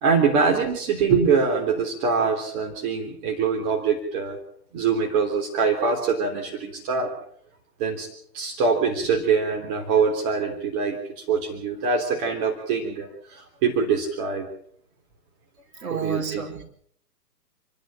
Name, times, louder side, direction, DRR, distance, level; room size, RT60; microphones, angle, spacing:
voice 1, 0.0-4.4 4.7-7.1 7.8-8.1 8.3-14.5 15.7-16.4, right 5 dB, 30° right, 2 dB, 3.6 m, -24 dB
voice 2, 15.8-16.6, right 6 dB, 55° right, 3 dB, 5.2 m, -31 dB
29.0 x 11.0 x 8.9 m, 0.64 s
figure-of-eight pair, 135°, 50 cm